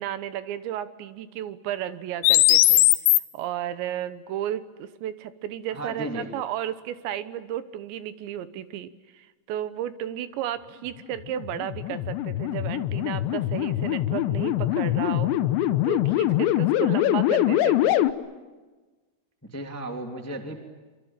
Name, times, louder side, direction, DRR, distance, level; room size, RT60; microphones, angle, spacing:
voice 1, 0.0-2.9 3.3-18.0, right 11 dB, 75° right, 13 dB, 3.2 m, -33 dB
sound 1, 2.2-3.2 11.3-18.1, left 14 dB, 75° left, 3.1 m, -22 dB
voice 2, 5.7-6.3 19.5-20.5, right 1 dB, 5° left, 5 dB, 1.2 m, -34 dB
26.0 x 25.5 x 8.9 m, 1.3 s
omnidirectional pair, 5.4 m